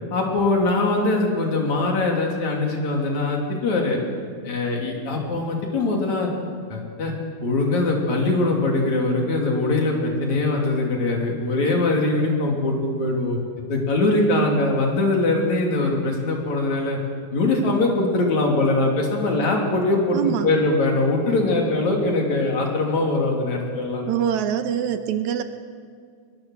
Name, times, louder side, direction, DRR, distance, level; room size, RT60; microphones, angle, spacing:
voice 1, 0.1-4.0 4.4-6.3 6.7-7.1 7.4-13.4 13.7-17.0 17.3-24.0, left 2 dB, 60° left, 0 dB, 4.3 m, -22 dB
voice 2, 20.1-20.5 24.1-25.4, right 9 dB, 75° right, 9 dB, 2.1 m, -24 dB
23.0 x 20.0 x 6.5 m, 2.1 s
omnidirectional pair, 3.7 m